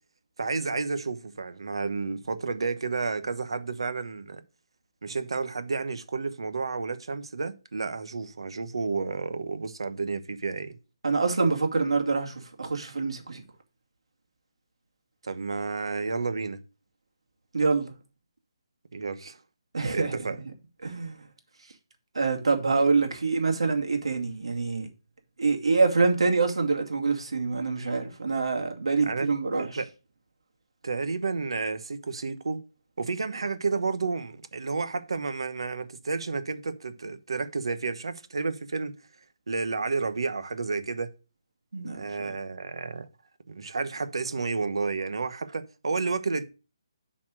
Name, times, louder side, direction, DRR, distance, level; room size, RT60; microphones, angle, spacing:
voice 1, 0.4-4.4 5.0-10.8 15.2-16.6 18.9-19.4 19.9-20.4 29.1-29.3 29.6-29.9 30.8-32.6 33.0-38.9 39.5-41.1 41.9-43.1 43.5-46.4, right 4 dB, 70° right, 1.1 m, -31 dB
voice 2, 11.0-13.4 17.5-17.9 19.7-20.2 20.8-21.2 22.1-24.9 25.4-29.7 41.7-42.3, right 4 dB, 90° right, 2.3 m, -26 dB
7.5 x 4.2 x 6.4 m
hypercardioid pair, 175°, 3 cm